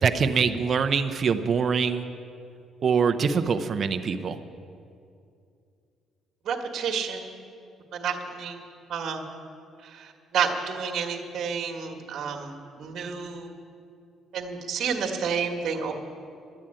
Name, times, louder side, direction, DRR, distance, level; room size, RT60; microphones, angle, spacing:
voice 1, 0.0-2.0 2.8-4.4, right 6 dB, 35° right, 9 dB, 0.6 m, -24 dB
voice 2, 6.4-7.3 7.9-8.6 8.9-9.2 9.8-13.5 14.3-15.9, right 6 dB, 55° right, 2 dB, 1.4 m, -30 dB
11.0 x 9.1 x 8.8 m, 2.5 s
cardioid pair, 145°, 0 cm